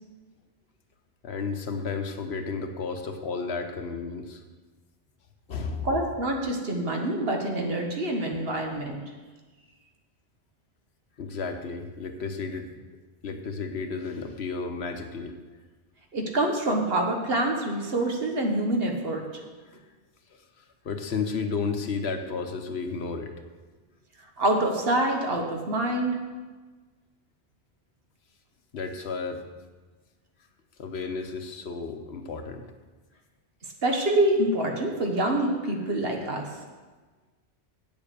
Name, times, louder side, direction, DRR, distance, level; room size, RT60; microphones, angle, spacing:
voice 1, 1.2-4.4 5.5-5.9 11.2-12.7 13.2-15.4 19.7-19.8 20.3-23.3 28.7-29.4 30.8-32.6, left 4 dB, 85° left, 6 dB, 1.2 m, -33 dB
voice 2, 5.8-9.0 16.1-19.2 24.4-26.2 33.8-36.5, right 1 dB, 70° right, 1 dB, 1.4 m, -26 dB
8.3 x 7.1 x 6.7 m, 1.3 s
omnidirectional pair, 1.1 m